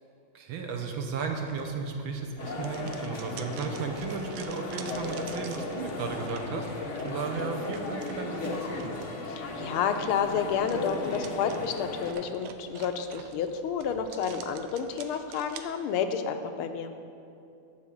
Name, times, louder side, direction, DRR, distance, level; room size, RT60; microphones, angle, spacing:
voice 1, 0.3-8.9, right 4 dB, 70° right, 3 dB, 1.6 m, -34 dB
sound 1, 0.7-15.6, right 8 dB, 85° right, 1.5 m, -49 dB
sound 2, 2.4-12.1, left 2 dB, 60° left, 0.7 m, -36 dB
voice 2, 9.3-16.9, left 7 dB, 85° left, 7 dB, 1.5 m, -30 dB
11.0 x 4.9 x 7.1 m, 2.6 s
omnidirectional pair, 2.4 m